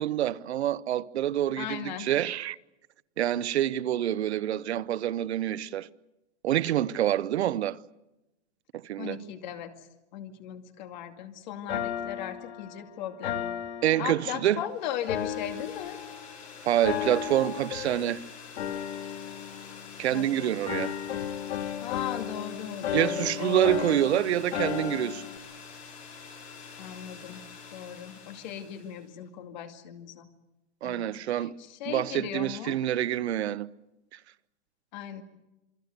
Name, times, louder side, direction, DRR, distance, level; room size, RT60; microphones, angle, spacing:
voice 1, 0.0-2.6 3.2-5.9 6.4-7.8 8.7-9.2 13.8-14.6 16.6-18.2 20.0-20.9 22.9-25.2 30.8-31.5 31.9-33.7, right 12 dB, 70° right, 0.9 m, -27 dB
voice 2, 1.6-2.1 9.0-9.7 10.1-13.5 14.0-16.0 20.1-20.6 21.5-23.8 26.8-27.4 27.7-30.3 30.8-32.8 34.9-35.2, left 10 dB, 40° left, 2.3 m, -37 dB
sound 1, 11.7-14.6 15.1-16.4 16.8-18.2 18.6-20.3 20.7-25.4, left 9 dB, 65° left, 2.4 m, -35 dB
sound 2, 14.6-29.1, left 5 dB, 25° left, 4.8 m, -47 dB
28.0 x 23.0 x 6.6 m
supercardioid pair, 175°, 34 cm